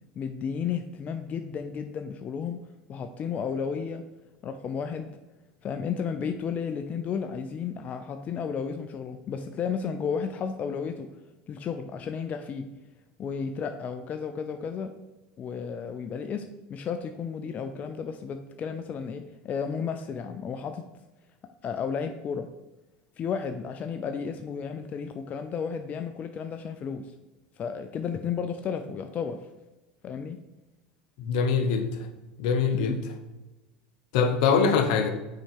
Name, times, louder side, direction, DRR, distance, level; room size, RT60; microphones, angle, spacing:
voice 1, 0.2-2.6 2.9-4.0 4.4-5.1 5.6-11.1 11.5-12.7 13.2-14.9 15.4-20.8 21.6-22.5 23.2-27.1 27.6-29.4 30.0-30.4 32.7-33.0, left 6 dB, 35° left, 7 dB, 0.5 m, -33 dB
voice 2, 31.2-32.0 32.4-33.0 34.1-35.1, left 5 dB, 70° left, 7 dB, 0.9 m, -23 dB
6.4 x 4.2 x 4.9 m, 1.1 s
supercardioid pair, 100°, 4 cm